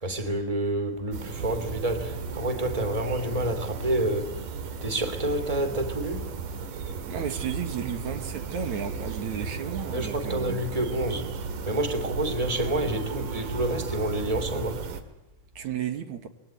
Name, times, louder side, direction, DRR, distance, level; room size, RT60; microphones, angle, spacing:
voice 1, 0.0-4.5 4.8-6.3 9.9-14.8, right 1 dB, 10° right, 2.8 m, -28 dB
sound 1, 1.1-15.0, right 5 dB, 85° right, 3.4 m, -35 dB
voice 2, 7.1-10.6 15.6-16.3, right 8 dB, 65° right, 3.1 m, -33 dB
27.0 x 22.0 x 9.1 m
omnidirectional pair, 3.6 m